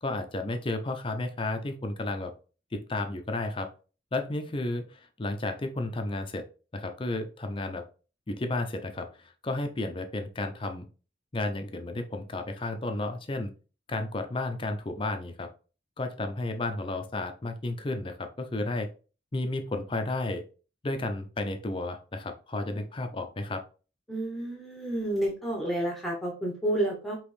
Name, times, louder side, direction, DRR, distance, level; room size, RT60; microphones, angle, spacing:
voice 1, 0.0-2.3 2.7-3.7 4.1-6.4 6.7-7.8 8.3-10.8 11.3-13.5 13.9-15.5 16.0-18.9 19.3-20.4 20.8-23.6, left 2 dB, 30° left, 6 dB, 0.5 m, -32 dB
voice 2, 24.1-27.2, right 1 dB, ahead, -1 dB, 0.9 m, -30 dB
5.0 x 3.0 x 3.2 m, 0.35 s
head